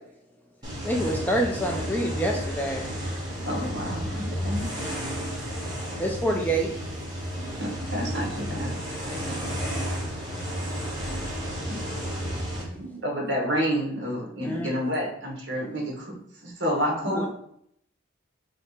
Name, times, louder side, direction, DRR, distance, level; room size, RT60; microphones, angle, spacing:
sound 1, 0.6-12.6, equal, 20° right, 1.1 m, -32 dB
voice 1, 0.8-2.8 6.0-6.7 9.1-9.9 14.4-14.7 16.7-17.3, right 1 dB, 10° left, 0 dB, 0.3 m, -28 dB
voice 2, 3.5-4.6 7.9-8.8 13.0-16.1 16.4-17.3, equal, 60° right, -2 dB, 1.3 m, -29 dB
voice 3, 7.4-8.1 9.2-9.6 12.6-13.1, right 3 dB, 35° right, -4 dB, 0.6 m, -43 dB
3.3 x 2.8 x 4.2 m, 0.70 s
head